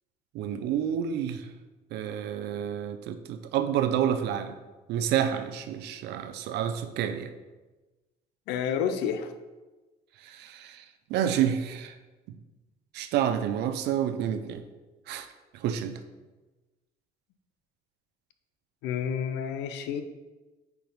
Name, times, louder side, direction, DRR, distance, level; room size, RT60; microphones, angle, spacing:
voice 1, 0.3-1.5 1.9-4.5 4.9-7.3 10.2-10.8 11.1-11.9 12.3-12.4 12.9-14.6 15.1-15.3 15.5-16.0, right 9 dB, 80° right, 9 dB, 0.6 m, -29 dB
voice 2, 8.5-9.3 18.8-20.0, left 8 dB, 90° left, 8 dB, 0.6 m, -29 dB
4.8 x 4.7 x 5.2 m, 1.2 s
cardioid pair, 110°, 17 cm